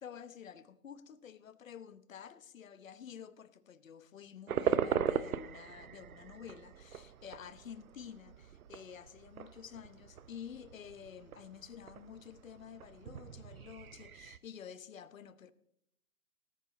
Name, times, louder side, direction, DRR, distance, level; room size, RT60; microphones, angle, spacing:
voice 1, 0.0-15.5, left 8 dB, 60° left, 1.1 m, -50 dB
sound 1, 4.5-14.4, right 8 dB, 70° right, 0.8 m, -39 dB
18.0 x 8.5 x 4.0 m
hypercardioid pair, 160°, 44 cm